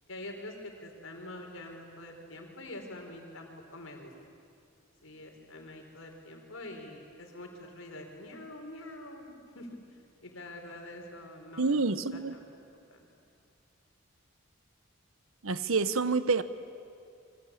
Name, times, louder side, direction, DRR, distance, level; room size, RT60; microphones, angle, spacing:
voice 1, 0.1-4.1 5.0-12.5 12.9-13.1, left 1 dB, 75° left, 3 dB, 4.6 m, -45 dB
voice 2, 11.6-12.3 15.4-16.4, right 4 dB, 85° right, 13 dB, 1.1 m, -27 dB
27.5 x 23.5 x 8.6 m, 2.4 s
head